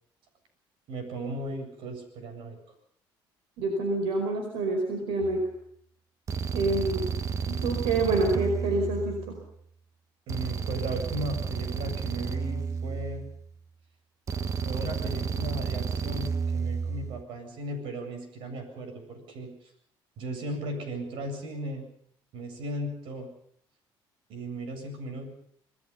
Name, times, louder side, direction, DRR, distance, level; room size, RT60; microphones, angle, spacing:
voice 1, 0.9-2.6 10.3-13.3 14.6-19.7 20.2-21.9 22.3-23.3 24.3-25.3, right 1 dB, 70° right, 7 dB, 7.8 m, -36 dB
voice 2, 3.6-5.5 6.5-7.1 7.5-9.4, right 2 dB, 90° right, 4 dB, 5.0 m, -27 dB
sound 1, 5.2-5.5 6.3-9.5 10.3-13.5 14.3-17.2, right 5 dB, 35° right, 0.9 m, -32 dB
27.5 x 20.0 x 5.6 m, 0.64 s
cardioid pair, 140°, 9 cm